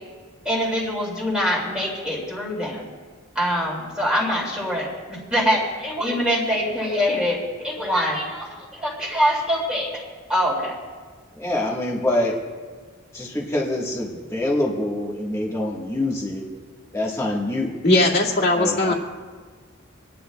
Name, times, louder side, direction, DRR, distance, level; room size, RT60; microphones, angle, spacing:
voice 1, 0.4-2.9 3.3-9.9 10.3-10.7, equal, 5° right, -4 dB, 2.4 m, -24 dB
voice 2, 11.3-12.4 13.1-16.4 16.9-17.7 18.6-18.9, left 1 dB, 15° left, -3 dB, 1.4 m, -25 dB
voice 3, 17.8-18.9, left 2 dB, 50° left, -2 dB, 2.3 m, -18 dB
27.5 x 10.0 x 2.3 m, 1.5 s
head